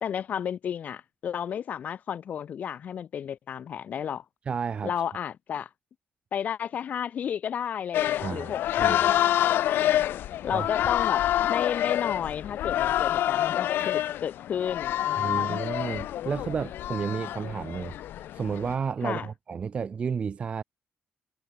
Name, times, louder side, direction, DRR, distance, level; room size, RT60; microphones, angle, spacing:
voice 1, 0.0-4.2 4.8-5.7 6.3-15.6 19.0-19.3, left 8 dB, 45° left, 0.9 m, -33 dB
voice 2, 4.5-4.9 8.2-8.5 8.8-9.1 10.5-10.7 15.2-17.9 18.3-20.6, right 6 dB, 30° right, 0.6 m, -31 dB
sound 1, 7.9-18.7, left 12 dB, 80° left, 1.8 m, -27 dB
cardioid pair, 165°, 4 cm